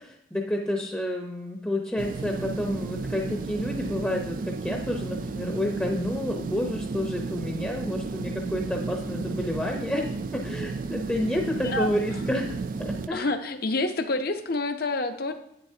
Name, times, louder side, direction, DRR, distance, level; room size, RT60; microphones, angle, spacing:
voice 1, 0.0-13.3, left 1 dB, 10° left, 0 dB, 0.7 m, -30 dB
sound 1, 2.0-13.1, right 4 dB, 45° right, 0.3 m, -33 dB
voice 2, 13.1-15.3, left 2 dB, 50° left, 8 dB, 0.7 m, -28 dB
10.5 x 8.8 x 2.8 m, 0.77 s
head